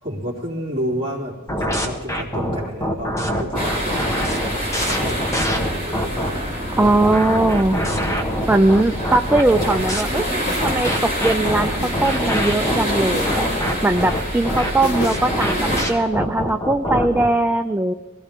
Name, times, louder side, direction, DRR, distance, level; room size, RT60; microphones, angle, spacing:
voice 1, 0.0-5.3 5.7-6.5 6.8-7.4 9.2-9.5, equal, 25° right, -3 dB, 3.2 m, -31 dB
sound 1, 1.5-6.3 6.8-10.0 10.6-17.3, equal, 15° left, 1.3 m, -24 dB
sound 2, 3.5-15.8, equal, 35° left, 4.8 m, -26 dB
voice 2, 6.8-7.8 8.5-10.3 10.6-17.9, right 2 dB, 10° right, 7 dB, 0.4 m, -20 dB
sound 3, 9.8-15.4, left 2 dB, 75° left, 1.6 m, -34 dB
21.5 x 16.0 x 3.7 m, 1.3 s
head